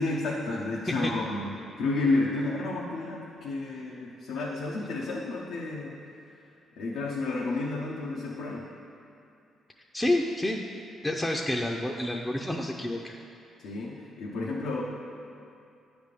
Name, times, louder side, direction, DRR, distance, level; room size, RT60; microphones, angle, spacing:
voice 1, 0.0-5.9 6.8-8.6 13.6-14.8, left 2 dB, 85° left, -4 dB, 0.8 m, -31 dB
voice 2, 9.9-10.6 11.0-13.2, left 1 dB, 10° left, 0 dB, 0.5 m, -29 dB
8.9 x 3.5 x 6.7 m, 2.6 s
cardioid pair, 90°, 0 cm